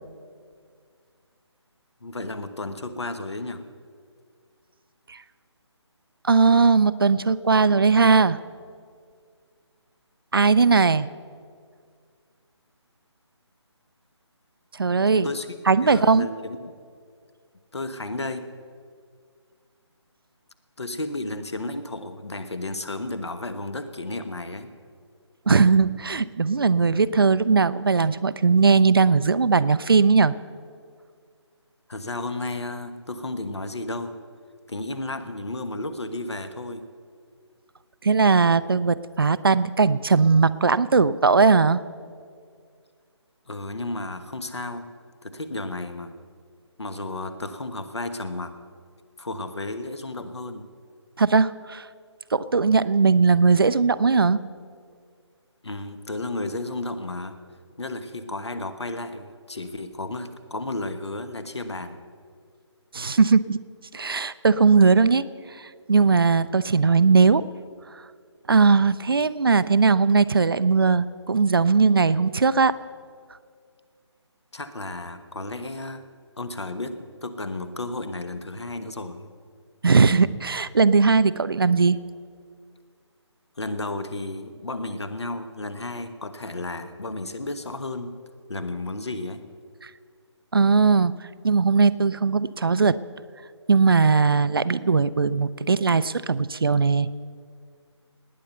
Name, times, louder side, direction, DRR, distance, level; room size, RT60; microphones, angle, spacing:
voice 1, 2.0-3.6 14.9-16.7 17.7-18.5 20.8-24.7 31.9-34.2 34.7-36.8 43.5-44.9 45.2-46.1 46.8-48.5 49.2-50.6 55.6-57.4 57.8-62.0 74.5-76.1 76.4-79.3 83.6-88.1 88.5-89.4, left 2 dB, 65° left, 11 dB, 1.3 m, -33 dB
voice 2, 6.2-8.4 10.3-11.1 14.8-15.3 15.7-16.3 25.5-30.3 38.0-41.8 51.2-51.9 52.3-54.4 62.9-63.6 63.9-65.2 65.6-67.5 68.5-72.7 79.8-82.0 89.8-89.9 90.5-91.1 91.4-93.0 93.7-97.1, right 4 dB, 50° right, 15 dB, 0.5 m, -19 dB
19.0 x 9.2 x 6.8 m, 2.1 s
figure-of-eight pair, 150°, 15 cm